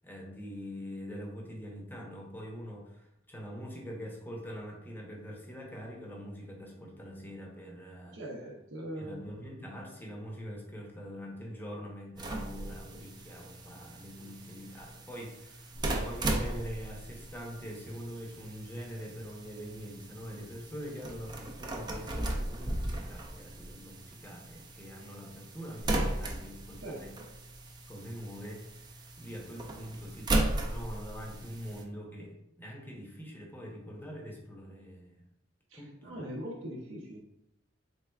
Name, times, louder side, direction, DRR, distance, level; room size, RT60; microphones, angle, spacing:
voice 1, 0.0-8.2 8.8-15.7 16.0-27.1 27.9-28.9 29.2-30.3 30.7-35.2 35.7-36.3, equal, 10° left, -1 dB, 0.8 m, -44 dB
voice 2, 8.1-9.2 26.8-27.0 35.7-37.2, right 1 dB, 70° right, -3 dB, 0.7 m, -41 dB
sound 1, 12.2-31.8, right 1 dB, 20° right, 0.4 m, -37 dB
4.4 x 3.3 x 2.3 m, 0.81 s
head